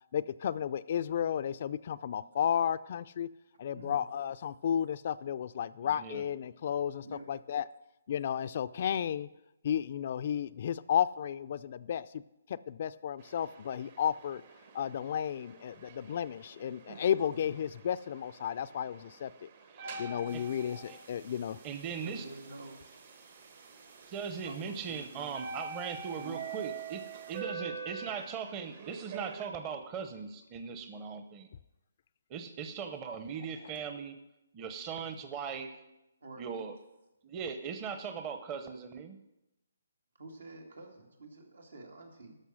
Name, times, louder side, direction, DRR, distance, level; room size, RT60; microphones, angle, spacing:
voice 1, 0.1-3.3 3.6-7.7 8.1-9.3 9.6-12.2 12.5-14.4 14.7-19.5 20.0-21.6, left 9 dB, 45° left, 14 dB, 0.4 m, -33 dB
voice 2, 3.7-4.0 7.0-7.4 20.2-20.4 22.0-23.2 23.8-23.9 24.4-25.7 26.2-26.6 36.2-36.5 40.1-42.4, right 2 dB, 85° right, 2 dB, 2.5 m, -49 dB
voice 3, 5.8-6.2 19.7-19.9 20.3-20.4 20.9-21.0 21.6-22.2 24.1-31.5 32.3-34.2 34.5-35.8 36.4-36.7 37.2-39.2, right 6 dB, 25° right, 7 dB, 0.8 m, -39 dB
sound 1, 13.2-29.5, right 5 dB, 45° right, 1.1 m, -46 dB
sound 2, 20.3-27.4, right 4 dB, 65° right, 2.6 m, -58 dB
13.0 x 5.6 x 6.3 m, 0.92 s
hypercardioid pair, 155°, 0 cm